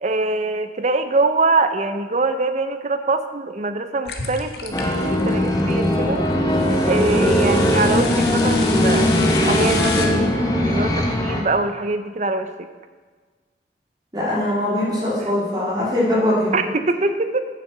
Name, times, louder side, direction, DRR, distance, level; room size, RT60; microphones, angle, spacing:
voice 1, 0.0-6.2 6.8-12.7 16.5-17.4, right 3 dB, 40° right, 9 dB, 0.7 m, -23 dB
sound 1, 4.0-6.1 6.5-10.1, left 5 dB, 65° left, 1.2 m, -32 dB
sound 2, 4.7-11.4, left 1 dB, 20° left, 1.1 m, -19 dB
voice 2, 14.1-16.6, left 1 dB, 25° right, -8 dB, 3.2 m, -21 dB
9.0 x 7.4 x 6.7 m, 1.4 s
head